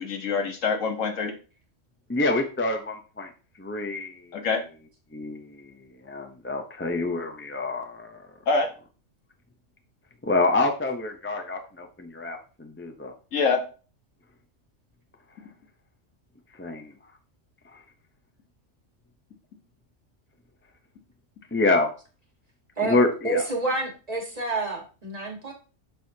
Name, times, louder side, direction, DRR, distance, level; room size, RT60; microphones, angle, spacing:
voice 1, 0.0-1.3 4.3-4.6 8.5-8.7 13.3-13.6, left 4 dB, 90° left, 4 dB, 1.6 m, -25 dB
voice 2, 2.1-3.3 3.6-4.2 5.1-5.6 6.0-8.2 10.3-13.1 16.6-16.9 21.5-21.9 22.8-23.4, left 2 dB, 15° left, 4 dB, 0.6 m, -27 dB
voice 3, 23.2-25.5, right 2 dB, 30° right, 1 dB, 1.6 m, -28 dB
7.7 x 6.2 x 2.8 m, 0.36 s
omnidirectional pair, 1.3 m